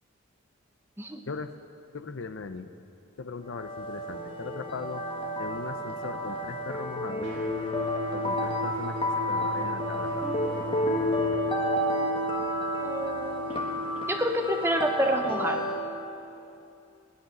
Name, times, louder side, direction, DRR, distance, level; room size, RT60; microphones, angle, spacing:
voice 1, 1.9-2.7 3.2-5.0 5.4-7.3 8.1-9.0 9.3-10.2, left 4 dB, 65° left, 10 dB, 0.6 m, -38 dB
sound 1, 3.5-15.8, equal, 25° left, 1.2 m, -30 dB
sound 2, 7.2-11.3, left 1 dB, 60° right, 2.2 m, -38 dB
voice 2, 12.8-13.5 14.1-15.7, equal, 10° right, 4 dB, 0.9 m, -28 dB
20.0 x 10.5 x 6.0 m, 2.8 s
head